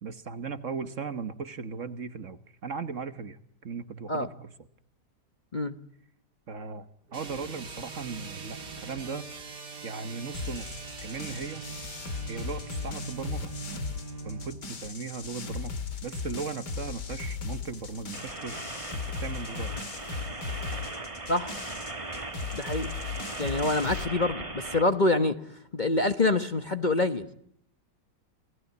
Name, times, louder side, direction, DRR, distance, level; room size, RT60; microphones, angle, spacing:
voice 1, 0.0-4.5 6.5-9.3 9.8-11.6 12.3-13.5 14.2-15.7 16.0-18.6 19.1-19.7, right 5 dB, 50° right, 1.4 m, -37 dB
sound 1, 7.1-14.6, right 4 dB, 65° right, 3.4 m, -41 dB
sound 2, 10.3-24.1, left 5 dB, 70° left, 2.8 m, -37 dB
sound 3, 18.1-24.8, right 2 dB, 20° right, 1.6 m, -38 dB
voice 2, 22.5-22.9 23.4-25.4 25.7-27.3, left 2 dB, 30° left, 1.1 m, -26 dB
27.5 x 18.5 x 9.4 m
omnidirectional pair, 1.9 m